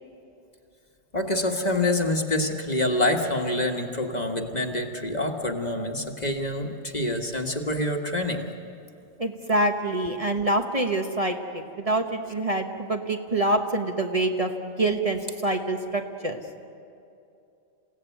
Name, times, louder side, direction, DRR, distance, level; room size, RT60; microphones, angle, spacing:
voice 1, 1.1-8.5, left 1 dB, 40° left, 3 dB, 1.8 m, -26 dB
voice 2, 9.2-16.4, right 1 dB, 30° right, 3 dB, 1.3 m, -26 dB
29.0 x 16.5 x 9.3 m, 2.7 s
omnidirectional pair, 1.1 m